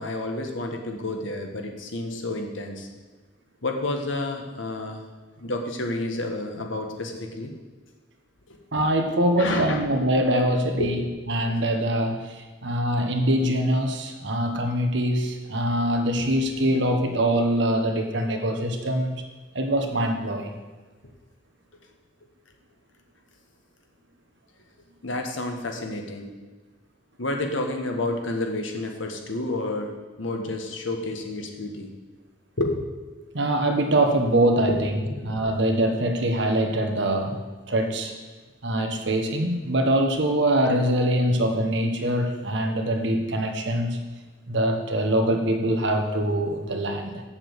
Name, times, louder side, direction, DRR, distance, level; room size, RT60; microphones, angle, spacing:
voice 1, 0.0-2.9 3.6-5.0 5.4-7.5 8.5-8.6 9.4-9.8 10.8-10.9 25.0-26.3 27.2-31.9 32.6-32.8 34.7-35.5, left 2 dB, 80° left, 3 dB, 1.5 m, -30 dB
voice 2, 8.7-11.0 11.3-12.2 12.6-19.1 19.5-20.5 33.3-37.4 37.7-38.1 38.6-44.0 44.5-47.2, right 1 dB, 65° right, 4 dB, 1.4 m, -23 dB
7.3 x 7.0 x 8.2 m, 1.3 s
head